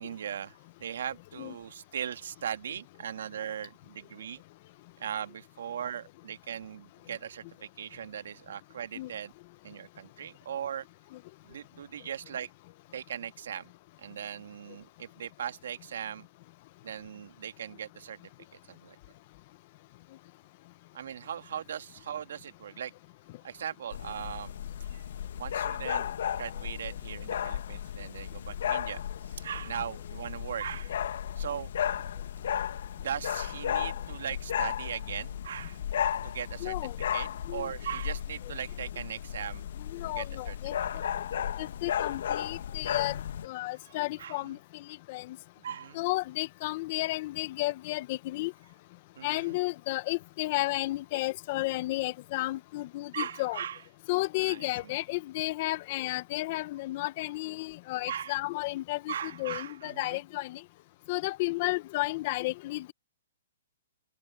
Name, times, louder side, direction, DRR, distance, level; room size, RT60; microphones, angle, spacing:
voice 1, 0.0-4.4 5.0-9.3 9.6-10.9 11.4-12.5 12.9-13.7 14.0-16.3 16.8-19.0 20.9-22.9 23.4-24.6 24.9-25.0 25.4-26.1 26.3-29.0 29.4-31.0 31.4-31.7 33.0-35.8 36.2-36.8 37.1-39.6 40.0-40.6 40.9-41.0 44.2-44.4 45.6-46.0 49.2-49.6 53.1-53.8 54.4-54.9 58.1-58.4 59.1-60.2, right 9 dB, 70° right, 1.8 m, -39 dB
sound 1, 23.9-43.5, left 9 dB, 65° left, 1.7 m, -34 dB
voice 2, 36.6-37.0 37.5-37.7 39.9-40.7 41.6-43.2 43.4-45.4 45.9-48.5 49.2-53.6 54.1-60.6 61.1-62.9, left 20 dB, 40° left, 0.9 m, -32 dB
open air
hypercardioid pair, 155°, 0 cm